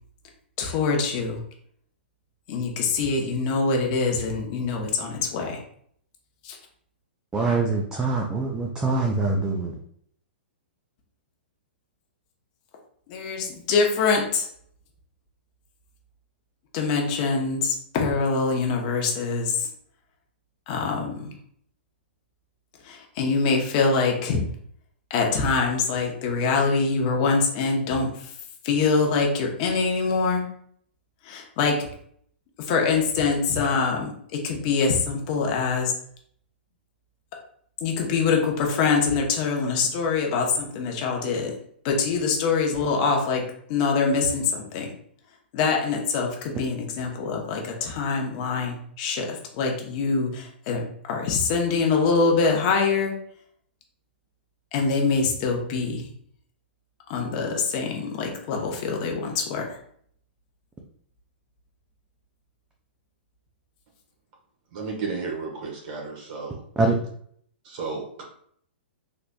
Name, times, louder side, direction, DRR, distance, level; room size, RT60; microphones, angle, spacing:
voice 1, 0.6-1.4 2.5-5.6 6.4-6.6 13.1-14.5 16.7-19.7 20.7-21.3 22.8-24.4 25.1-28.4 28.6-30.5 31.2-31.9 32.6-35.9 37.8-41.5 41.8-44.9 45.5-53.1 54.7-56.1 57.1-59.8, left 4 dB, 40° left, 1 dB, 0.9 m, -24 dB
voice 2, 7.3-9.8 66.8-67.0, right 3 dB, 10° right, 0 dB, 0.4 m, -24 dB
voice 3, 64.7-66.6 67.6-68.2, right 4 dB, 50° right, -1 dB, 1.3 m, -33 dB
3.8 x 3.1 x 2.3 m, 0.64 s
hypercardioid pair, 130°, 6 cm